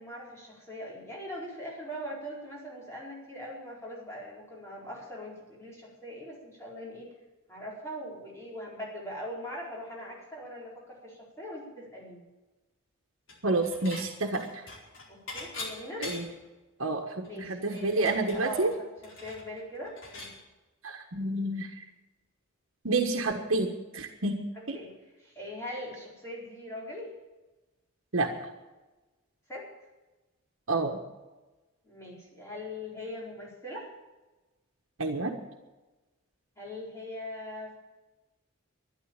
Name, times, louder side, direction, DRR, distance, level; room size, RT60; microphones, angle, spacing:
voice 1, 0.0-7.1 7.5-12.3 15.1-16.1 17.3-20.4 24.7-24.9 25.2-27.1 29.5-29.7 31.8-33.9 36.6-37.7, equal, 15° left, -5 dB, 4.5 m, -41 dB
Dishes pots and pans / Chink clink, 13.3-14.1 14.3-16.5 16.9-17.0 17.2-20.4, left 3 dB, 65° left, 4.6 m, -43 dB
voice 2, 13.4-14.5 16.0-16.2 16.8-17.2 17.6-18.7 20.8-21.8 22.8-24.4 24.7-24.8 28.1-28.3 30.7-31.0 35.0-35.4, right 2 dB, 75° right, 2 dB, 1.5 m, -29 dB
12.5 x 11.0 x 8.9 m, 1.1 s
head